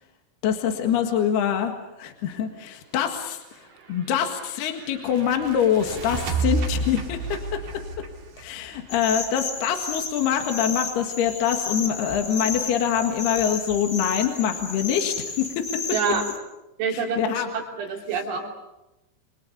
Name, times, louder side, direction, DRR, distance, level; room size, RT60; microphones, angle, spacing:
voice 1, 0.4-3.4 3.9-7.6 8.4-15.7 16.9-17.5, left 8 dB, 65° left, 5 dB, 3.5 m, -25 dB
sound 1, 3.7-9.5, right 4 dB, 50° right, 3.5 m, -31 dB
sound 2, 8.9-16.4, left 5 dB, 40° left, 1.6 m, -32 dB
voice 2, 15.9-16.3 16.8-17.4 17.8-18.5, right 6 dB, 80° right, 0 dB, 5.6 m, -26 dB
29.0 x 23.5 x 6.9 m, 0.94 s
omnidirectional pair, 5.4 m